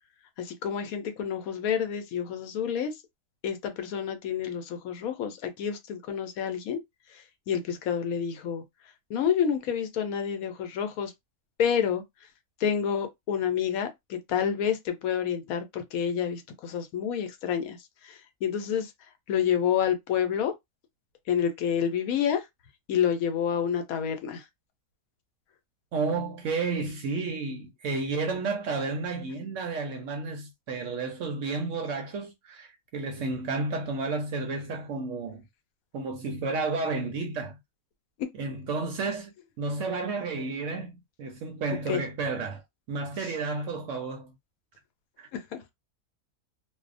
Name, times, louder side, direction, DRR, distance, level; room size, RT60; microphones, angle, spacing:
voice 1, 0.4-2.9 3.4-6.8 7.5-8.6 9.1-11.1 11.6-12.0 12.6-17.8 18.0-18.9 19.3-20.5 21.3-22.4 22.9-24.4 41.9-42.0 45.3-45.6, left 8 dB, 75° left, 1.0 m, -28 dB
voice 2, 25.9-35.5 35.9-37.6 38.3-42.6 42.9-44.3 45.2-45.3, right 3 dB, 70° right, 0.8 m, -31 dB
2.6 x 2.1 x 2.5 m
omnidirectional pair, 1.6 m